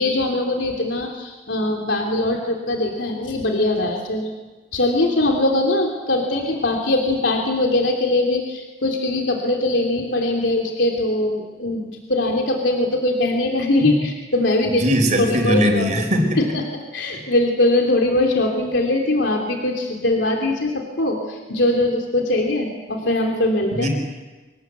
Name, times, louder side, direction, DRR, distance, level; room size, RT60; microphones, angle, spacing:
voice 1, 0.0-4.3 4.7-14.8 15.2-15.9 16.4-16.6 16.9-23.9, left 2 dB, 85° left, 1 dB, 3.1 m, -21 dB
voice 2, 14.8-16.4 23.7-23.9, equal, 40° right, 3 dB, 4.7 m, -19 dB
25.5 x 20.0 x 8.2 m, 1.2 s
head